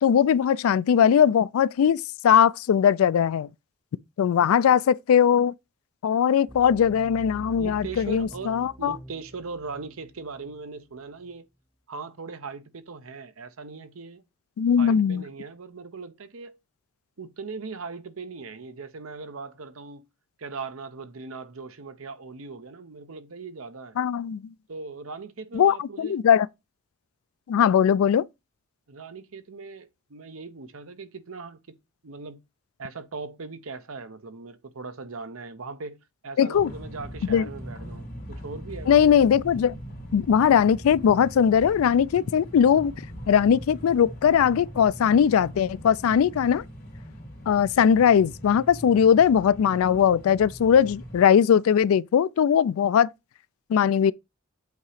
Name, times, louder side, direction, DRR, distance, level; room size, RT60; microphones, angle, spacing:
voice 1, 0.0-3.5 4.2-5.5 6.0-8.9 14.6-15.2 24.0-24.4 25.5-26.5 27.5-28.2 36.4-36.7 37.3-37.5 38.9-39.8 40.1-42.9 43.3-46.6 47.5-53.1 53.7-54.1, left 8 dB, 75° left, 0.3 m, -20 dB
sound 1, 6.5-10.9 11.2-11.4, equal, ahead, 0.6 m, -45 dB
voice 2, 7.6-11.5 11.9-14.2 14.8-16.6 17.2-20.0 20.4-24.0 24.7-26.2 28.9-31.8 32.0-32.4 32.8-39.2, right 4 dB, 75° right, 0.8 m, -39 dB
sound 2, 36.5-51.2, equal, 50° left, 2.8 m, -41 dB
8.1 x 2.9 x 4.8 m
head